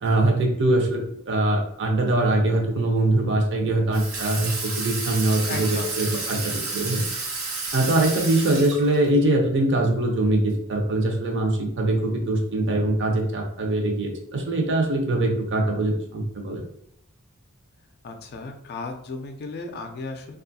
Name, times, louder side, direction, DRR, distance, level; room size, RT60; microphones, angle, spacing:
voice 1, 0.0-7.0 7.7-16.6, right 2 dB, 60° right, 2 dB, 0.6 m, -23 dB
Water tap faucet / Sink (filling or washing), 3.9-9.2, right 3 dB, 90° right, 0.8 m, -31 dB
voice 2, 5.5-6.0 18.0-20.4, left 3 dB, 50° left, 5 dB, 0.4 m, -35 dB
2.6 x 2.3 x 2.6 m, 0.74 s
head